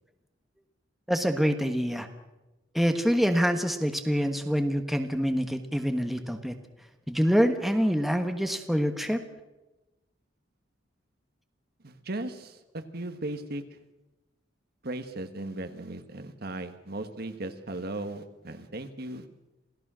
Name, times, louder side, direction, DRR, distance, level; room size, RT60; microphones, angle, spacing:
voice 1, 1.1-2.1 2.7-6.5 7.1-9.2, equal, ahead, 6 dB, 1.4 m, -26 dB
voice 2, 11.8-13.6 14.8-19.2, right 2 dB, 55° right, 8 dB, 1.6 m, -37 dB
27.5 x 17.0 x 6.3 m, 1.0 s
head